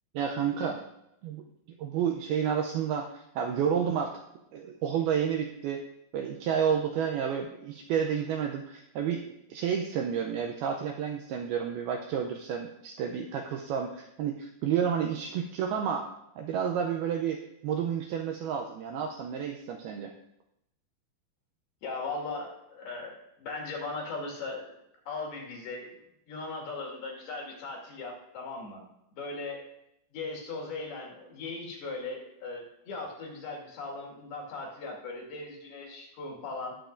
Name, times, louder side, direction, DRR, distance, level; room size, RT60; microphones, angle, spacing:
voice 1, 0.1-0.8 1.2-1.4 1.8-4.2 4.5-5.8 6.1-16.1 16.4-20.1, right 8 dB, 85° right, 3 dB, 2.2 m, -30 dB
voice 2, 21.8-24.7 25.1-25.9 26.3-28.9 29.1-29.6 30.1-36.8, left 3 dB, 65° left, -1 dB, 3.8 m, -38 dB
20.0 x 7.0 x 2.6 m, 0.83 s
omnidirectional pair, 5.2 m